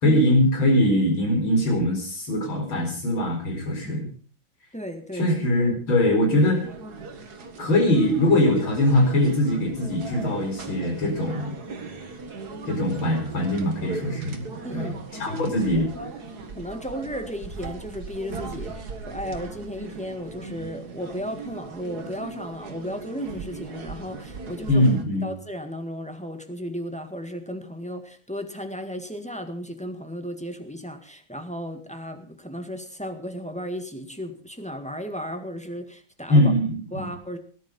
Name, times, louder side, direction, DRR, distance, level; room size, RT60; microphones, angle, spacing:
voice 1, 0.0-4.1 5.1-6.6 7.6-11.5 12.7-14.4 14.7-15.9 24.7-25.3 36.3-37.1, left 1 dB, 90° left, 4 dB, 5.3 m, -22 dB
voice 2, 4.7-5.3 14.6-15.0 15.2-16.2 16.6-24.9 25.2-36.5 36.9-37.4, equal, 5° left, 5 dB, 1.6 m, -35 dB
sound 1, 6.5-25.0, right 4 dB, 50° right, 2.3 m, -39 dB
18.5 x 11.0 x 5.4 m, 0.41 s
omnidirectional pair, 2.2 m